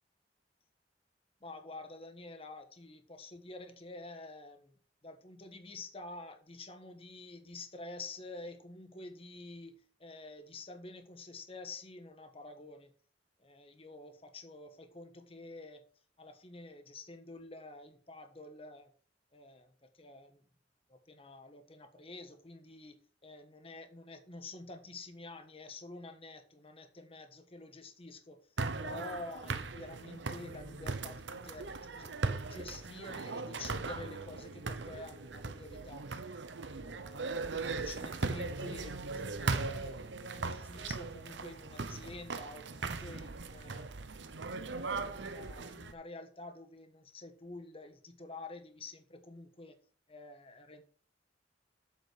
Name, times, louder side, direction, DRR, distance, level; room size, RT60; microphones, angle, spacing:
voice 1, 1.4-4.8 5.0-12.9 13.4-15.8 16.2-18.9 19.3-20.4 20.9-28.4 28.8-36.0 36.8-39.0 39.4-43.9 44.1-44.5 45.0-49.8 50.1-50.8, left 2 dB, 30° left, 8 dB, 1.3 m, -49 dB
sound 1, 28.6-45.9, right 3 dB, 85° right, 0.9 m, -39 dB
8.2 x 7.3 x 5.0 m, 0.42 s
head